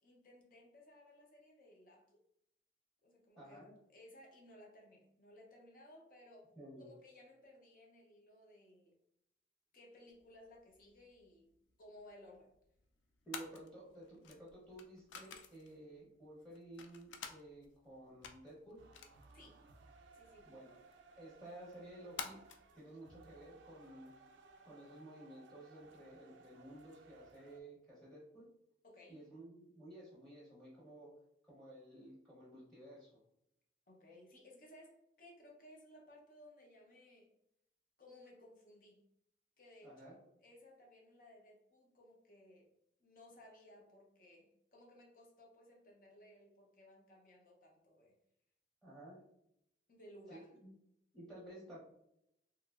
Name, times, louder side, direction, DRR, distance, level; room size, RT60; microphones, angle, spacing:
voice 1, 0.0-2.2 3.0-6.5 6.8-9.0 9.7-11.5 11.8-12.5 19.3-19.6 20.1-20.5 28.8-29.2 33.9-37.3 38.0-39.0 39.6-42.7 43.0-48.1 49.9-50.5, left 1 dB, 50° left, -1 dB, 0.6 m, -60 dB
voice 2, 3.4-3.7 6.5-6.9 13.2-18.9 20.4-20.8 21.2-22.4 22.7-24.2 24.6-28.5 29.1-31.1 31.5-33.2 39.8-40.2 48.8-49.3 50.3-50.7 51.1-51.8, right 1 dB, 5° left, -7 dB, 0.7 m, -54 dB
sound 1, 10.1-22.7, left 6 dB, 85° left, 0.4 m, -54 dB
sound 2, 18.8-27.6, right 3 dB, 80° right, 0.3 m, -62 dB
3.0 x 2.8 x 2.4 m, 0.79 s
head